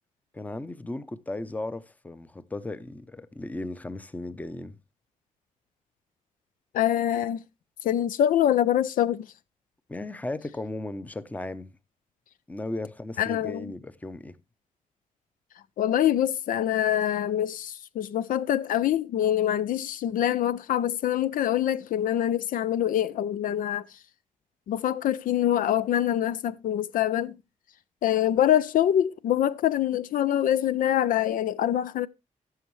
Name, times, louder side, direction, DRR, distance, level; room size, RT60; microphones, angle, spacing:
voice 1, 0.3-4.8 9.9-11.8 12.5-14.4, left 2 dB, 10° left, 0.6 m, -36 dB
voice 2, 6.7-7.4 7.8-9.3 13.2-13.7 15.8-24.0 24.7-27.4 28.0-32.1, left 11 dB, 85° left, 0.5 m, -25 dB
17.0 x 7.0 x 3.1 m
cardioid pair, 125°, 14 cm